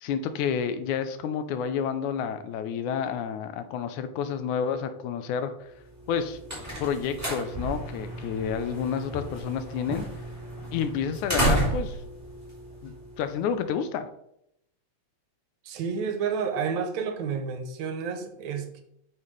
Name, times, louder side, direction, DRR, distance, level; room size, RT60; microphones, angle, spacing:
voice 1, 0.0-5.7 6.1-6.4 6.8-10.1 10.7-12.0 12.8-14.1, left 7 dB, 85° left, 10 dB, 2.1 m, -30 dB
sound 1, 6.0-13.4, right 1 dB, 5° right, 3.0 m, -32 dB
voice 2, 15.6-18.8, right 6 dB, 75° right, 7 dB, 2.1 m, -30 dB
8.7 x 6.7 x 3.3 m, 0.78 s
omnidirectional pair, 3.4 m